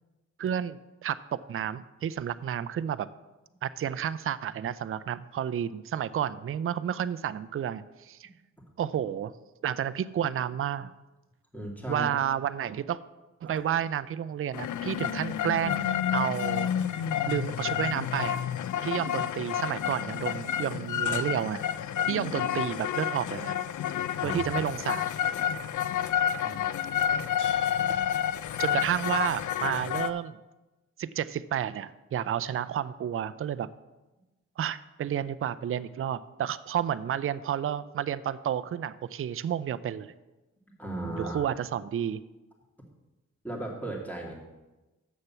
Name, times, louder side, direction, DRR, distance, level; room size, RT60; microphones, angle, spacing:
voice 1, 0.4-3.1 3.6-8.3 8.8-9.3 9.6-10.9 11.9-13.0 13.4-18.4 18.8-21.6 22.1-23.6 24.2-25.1 26.4-26.7 28.6-30.4 31.0-33.7 34.6-40.1 41.1-42.2, right 9 dB, 45° right, 15 dB, 0.4 m, -31 dB
voice 2, 11.5-12.1 24.2-24.4 25.4-25.5 40.8-41.5 43.4-44.3, right 1 dB, 5° left, -2 dB, 2.3 m, -35 dB
sound 1, 14.5-30.1, left 9 dB, 70° left, 0.5 m, -30 dB
7.4 x 6.6 x 5.7 m, 1.1 s
cardioid pair, 50°, 31 cm